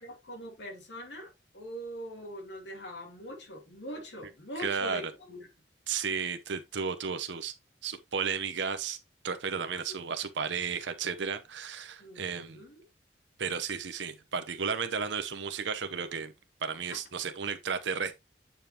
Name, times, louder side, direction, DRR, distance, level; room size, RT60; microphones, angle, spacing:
voice 1, 0.0-5.5 9.7-10.0 12.0-12.8 16.9-17.0, equal, 80° left, 2.4 m, -43 dB
voice 2, 4.6-5.0 5.9-7.5 7.8-9.0 9.2-12.6 13.4-16.3 16.6-18.1, right 6 dB, 90° right, 0.8 m, -33 dB
9.2 x 5.2 x 2.9 m
head